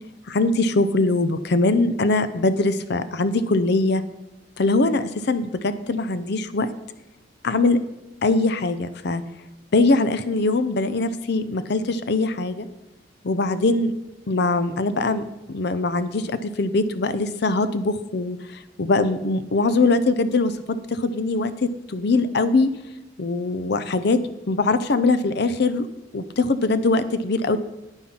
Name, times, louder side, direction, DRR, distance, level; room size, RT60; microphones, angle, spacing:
voice 1, 0.3-4.0 4.6-6.7 7.4-7.8 8.2-9.2 9.7-12.7 13.2-13.9 14.3-22.7 23.2-24.2 24.5-25.9 26.1-27.6, left 3 dB, 60° left, 12 dB, 0.6 m, -22 dB
9.9 x 9.4 x 4.4 m, 0.95 s
head